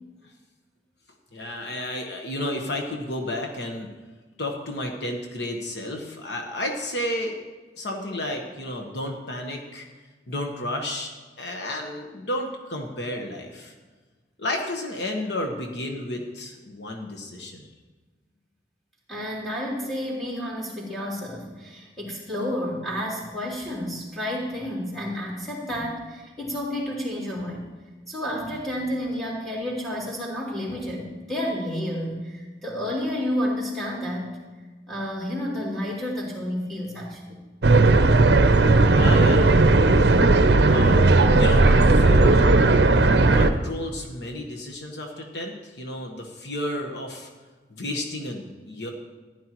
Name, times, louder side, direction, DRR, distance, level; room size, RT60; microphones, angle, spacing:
voice 1, 1.3-3.9 4.4-7.4 7.8-9.9 10.3-11.1 11.4-13.7 14.4-17.6 38.9-40.3 40.7-41.0 41.3-42.5 43.3-47.3 47.7-48.9, left 1 dB, 70° left, 2 dB, 1.2 m, -32 dB
voice 2, 19.1-27.7 28.1-34.3 34.9-37.4, equal, ahead, -6 dB, 3.2 m, -30 dB
sound 1, 37.6-43.5, right 2 dB, 65° right, 0.6 m, -16 dB
15.0 x 10.5 x 3.0 m, 1.3 s
head